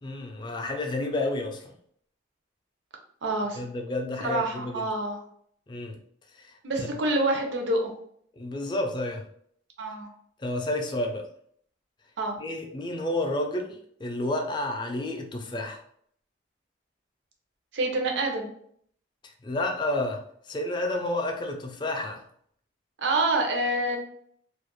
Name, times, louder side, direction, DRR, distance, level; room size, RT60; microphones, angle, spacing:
voice 1, 0.0-1.7 3.6-4.8 5.7-6.0 6.3-6.9 8.4-9.2 10.4-11.3 12.4-15.8 19.2-22.2, left 1 dB, 25° left, 3 dB, 0.3 m, -31 dB
voice 2, 3.2-3.6 4.2-5.2 6.6-7.9 9.8-10.1 12.2-12.4 17.7-18.5 23.0-24.0, right 2 dB, 75° right, 2 dB, 0.6 m, -27 dB
2.3 x 2.1 x 3.0 m, 0.64 s
head